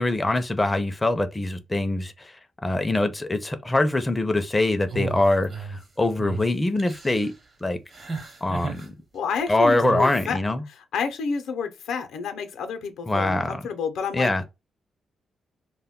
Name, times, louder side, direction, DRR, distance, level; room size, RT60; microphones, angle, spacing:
voice 1, 0.0-2.3 2.6-7.3 7.6-7.8 8.4-8.9 9.5-10.6 13.1-13.6 14.1-14.4, left 2 dB, 15° left, 0.4 m, -23 dB
sound 1, 4.9-5.8 6.2-6.4 6.8-7.3 7.9-8.9 9.8-10.2, right 4 dB, 45° right, 0.8 m, -33 dB
voice 2, 9.1-10.4 10.7-14.3, left 5 dB, 90° left, 0.5 m, -29 dB
2.2 x 2.1 x 3.5 m
cardioid pair, 100°, 0 cm